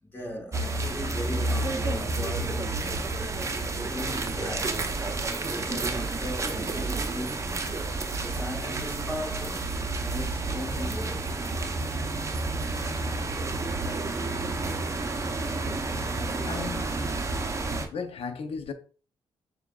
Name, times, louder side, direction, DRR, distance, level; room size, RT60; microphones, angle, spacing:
voice 1, 0.1-3.1 3.7-5.0 5.3-7.6 8.2-11.4 17.2-17.8, left 1 dB, 20° left, 1.6 m, -39 dB
sound 1, 0.5-17.9, right 3 dB, 30° right, 0.6 m, -30 dB
voice 2, 16.5-16.9 17.9-18.7, left 5 dB, 65° left, 0.7 m, -35 dB
6.5 x 2.3 x 2.3 m
supercardioid pair, 65°, 11 cm